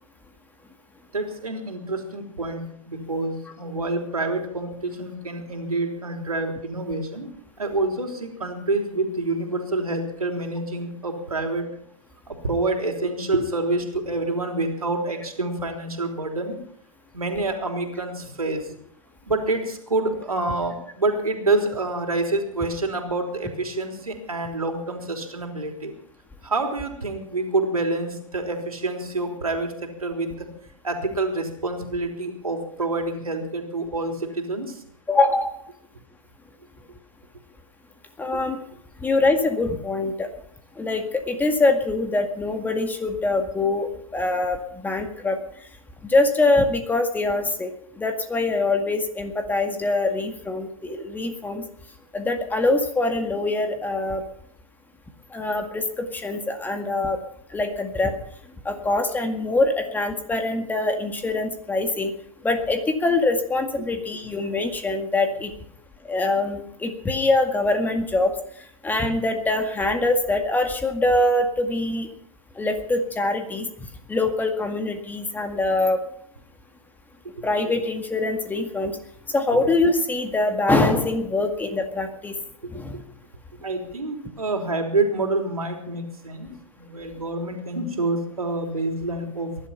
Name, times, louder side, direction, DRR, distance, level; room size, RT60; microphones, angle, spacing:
voice 1, 1.1-7.3 7.6-11.7 12.3-16.6 17.1-18.8 19.2-25.9 26.4-30.5 30.8-34.8 38.3-38.4 77.2-77.4 82.6-82.7 83.6-89.7, right 2 dB, 90° right, 4 dB, 3.6 m, -27 dB
voice 2, 35.1-35.6 38.2-38.6 39.0-40.3 40.8-44.6 44.8-45.4 46.0-47.7 48.0-51.7 52.1-54.2 55.3-57.2 57.5-58.1 58.7-62.1 62.4-65.5 66.1-68.3 68.8-72.1 72.6-73.7 74.1-76.0 77.4-78.9 79.3-82.3 82.7-83.0, left 2 dB, 10° left, 6 dB, 2.0 m, -23 dB
19.5 x 11.5 x 5.8 m, 0.68 s
hypercardioid pair, 115°, 18 cm